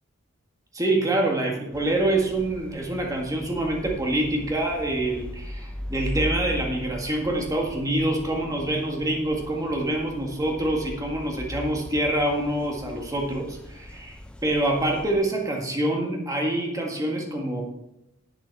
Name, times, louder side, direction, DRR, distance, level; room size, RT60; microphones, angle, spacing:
voice 1, 0.7-17.6, right 1 dB, 15° right, 0 dB, 1.8 m, -26 dB
sound 1, 1.7-15.1, equal, 5° left, 0.6 m, -39 dB
11.0 x 8.2 x 4.7 m, 0.89 s
head